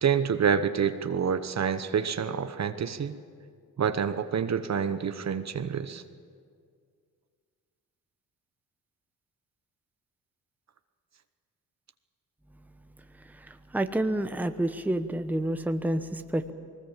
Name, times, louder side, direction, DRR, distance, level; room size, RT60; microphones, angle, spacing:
voice 1, 0.0-3.2 3.8-6.0, right 7 dB, 50° right, 10 dB, 1.1 m, -27 dB
voice 2, 13.3-16.4, right 1 dB, 5° right, 8 dB, 1.0 m, -29 dB
21.0 x 19.0 x 7.4 m, 2.1 s
cardioid pair, 75°, 35 cm